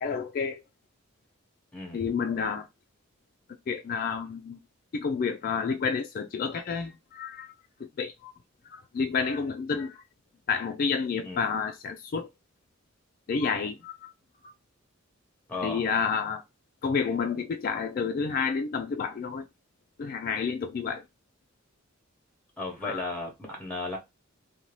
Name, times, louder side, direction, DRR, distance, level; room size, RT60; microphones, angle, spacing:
voice 1, 0.0-0.6 1.9-2.7 3.7-4.6 4.9-7.5 8.0-8.3 8.7-10.0 10.5-12.3 13.3-14.1 14.4-14.5 15.6-16.4 16.8-19.4 20.0-21.0 22.8-23.1, left 5 dB, 45° left, 0.3 m, -30 dB
voice 2, 15.5-15.9 22.6-24.0, left 2 dB, 5° left, 0.9 m, -35 dB
2.6 x 2.2 x 3.1 m
head